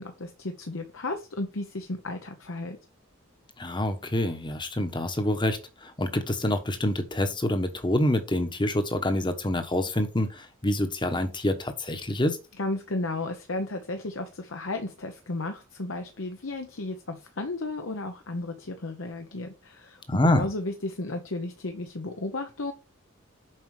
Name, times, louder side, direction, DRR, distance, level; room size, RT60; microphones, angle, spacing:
voice 1, 0.0-2.8 12.6-22.7, left 2 dB, 75° left, 1.0 m, -34 dB
voice 2, 3.6-12.4 20.1-20.5, left 1 dB, 25° left, 1.1 m, -26 dB
7.5 x 4.9 x 4.9 m
head